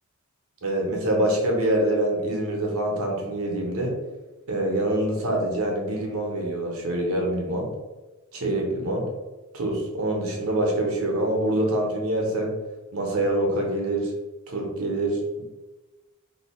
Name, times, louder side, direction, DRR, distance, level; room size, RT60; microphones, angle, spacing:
voice 1, 0.6-3.9 4.5-7.7 8.3-9.0 9.5-12.5 12.9-14.1 14.5-15.4, right 1 dB, 70° right, 0 dB, 0.8 m, -25 dB
2.7 x 2.3 x 4.1 m, 1.1 s
head